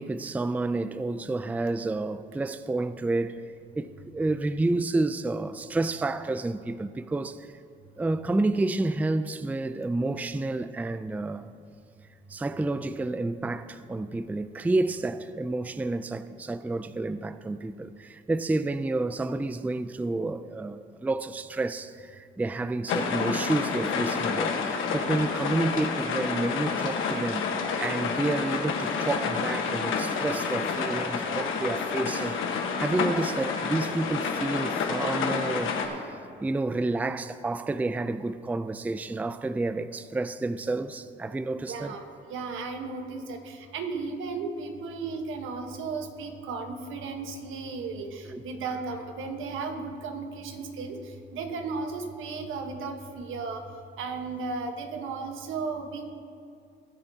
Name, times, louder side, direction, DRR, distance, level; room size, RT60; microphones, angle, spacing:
voice 1, 0.0-3.4 3.8-7.5 8.0-11.5 12.3-27.4 27.8-42.0 48.2-48.4, right 2 dB, 10° right, 0.4 m, -30 dB
sound 1, 22.9-35.9, left 5 dB, 85° left, 1.3 m, -29 dB
voice 2, 41.5-51.0 51.3-53.6 54.0-56.1, right 4 dB, 85° right, 1.3 m, -35 dB
20.5 x 9.5 x 2.8 m
cardioid pair, 90°, 20 cm